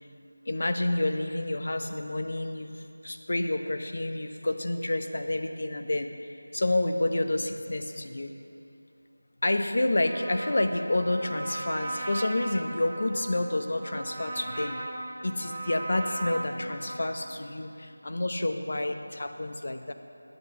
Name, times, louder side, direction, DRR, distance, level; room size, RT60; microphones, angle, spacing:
voice 1, 0.5-8.3 9.4-14.8 15.2-19.9, left 1 dB, 55° left, 7 dB, 0.8 m, -29 dB
Trumpet, 10.0-17.2, right 2 dB, 25° right, 2.0 m, -38 dB
10.5 x 8.0 x 7.0 m, 2.7 s
figure-of-eight pair, 170°, 0 cm